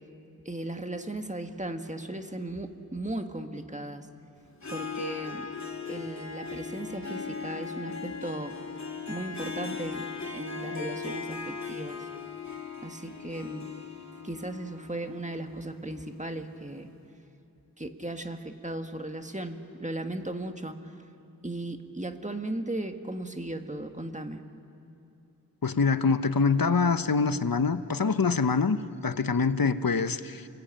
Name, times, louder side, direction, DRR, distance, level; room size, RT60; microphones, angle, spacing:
voice 1, 0.5-4.1 4.7-5.5 5.8-8.6 9.1-12.1 12.8-13.7 14.2-16.9 17.8-20.9 21.4-24.4, right 1 dB, 20° right, 6 dB, 1.7 m, -36 dB
Harp, 4.5-16.4, left 5 dB, 50° left, 2.3 m, -38 dB
voice 2, 25.6-30.5, left 5 dB, 65° left, 12 dB, 1.0 m, -25 dB
29.5 x 20.5 x 8.9 m, 2.8 s
wide cardioid pair, 45°, 37 cm